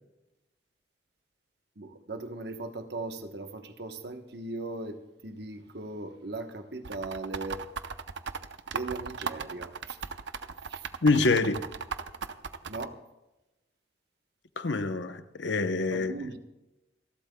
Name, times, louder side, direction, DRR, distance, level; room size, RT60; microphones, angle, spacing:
voice 1, 1.8-7.6 8.7-10.0 10.7-10.8 12.7-13.0 15.9-16.4, right 2 dB, 60° right, 1.1 m, -38 dB
sound 1, 6.8-12.9, right 5 dB, 80° right, 0.7 m, -36 dB
voice 2, 11.0-11.7 14.6-16.1, left 3 dB, 80° left, 0.8 m, -26 dB
29.0 x 12.0 x 2.3 m
head